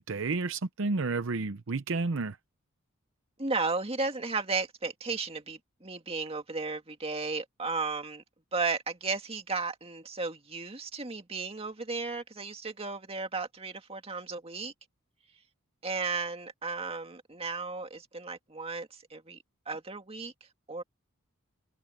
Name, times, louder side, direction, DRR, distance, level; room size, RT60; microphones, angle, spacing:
voice 1, 0.0-2.4, right 3 dB, 65° right, 0.7 m, -31 dB
voice 2, 3.4-8.2 8.5-14.7 15.8-19.4 19.7-20.3 20.7-20.8, right 4 dB, 30° right, 2.0 m, -34 dB
head